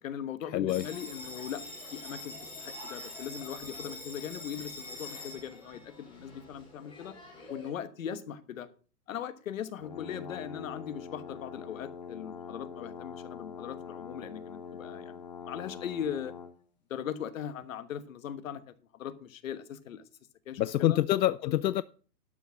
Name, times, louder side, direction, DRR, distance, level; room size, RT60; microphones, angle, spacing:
voice 1, 0.0-1.6 1.9-7.2 7.5-8.7 9.1-16.3 16.9-20.0 20.5-21.0, left 9 dB, 55° left, 1.3 m, -39 dB
voice 2, 0.5-0.9 20.6-21.8, left 13 dB, 85° left, 0.6 m, -26 dB
Bell, 0.7-7.7, left 2 dB, 10° left, 3.3 m, -45 dB
sound 1, 9.8-16.6, left 6 dB, 30° left, 0.5 m, -44 dB
12.5 x 6.1 x 6.3 m
hypercardioid pair, 160°, 49 cm